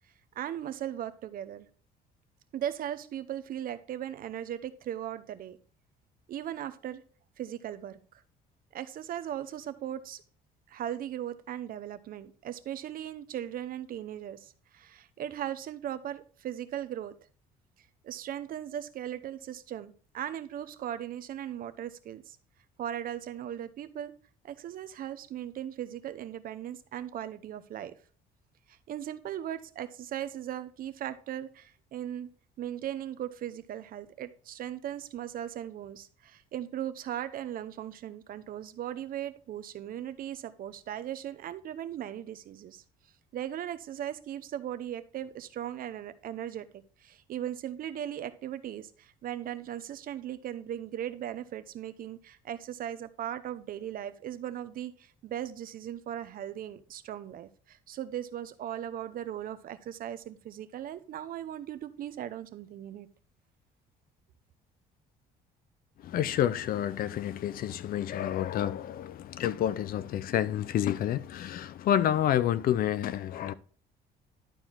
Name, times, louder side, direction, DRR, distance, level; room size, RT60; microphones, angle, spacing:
voice 1, 0.3-1.7 2.5-5.6 6.3-7.0 7.4-8.2 8.7-10.2 10.7-17.2 17.8-22.4 22.8-24.1 24.4-28.0 28.7-32.3 32.6-42.8 43.3-63.1, right 11 dB, 60° right, 0.8 m, -38 dB
voice 2, 66.0-73.5, left 11 dB, 60° left, 0.6 m, -29 dB
11.5 x 4.6 x 3.7 m
cardioid pair, 110°, 17 cm